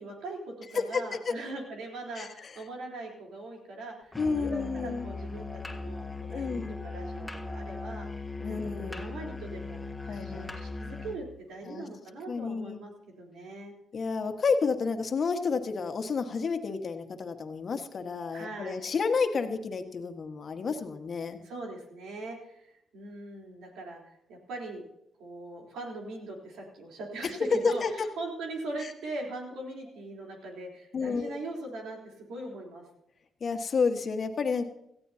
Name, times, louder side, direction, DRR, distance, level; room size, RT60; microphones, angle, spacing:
voice 1, 0.0-8.1 8.5-13.7 18.3-18.9 21.4-24.8 25.2-32.9, right 2 dB, 85° right, -1 dB, 3.7 m, -41 dB
voice 2, 0.9-1.3 2.2-2.5 4.2-5.1 6.3-6.7 8.4-9.0 10.1-10.5 11.6-11.8 12.3-12.8 13.9-21.4 27.6-27.9 28.8-28.9 30.9-31.4 33.4-34.6, left 5 dB, 55° left, 6 dB, 1.5 m, -30 dB
Musical instrument, 4.1-11.2, left 3 dB, 15° left, 1.7 m, -38 dB
17.5 x 15.0 x 2.8 m, 0.79 s
supercardioid pair, 60°, 0 cm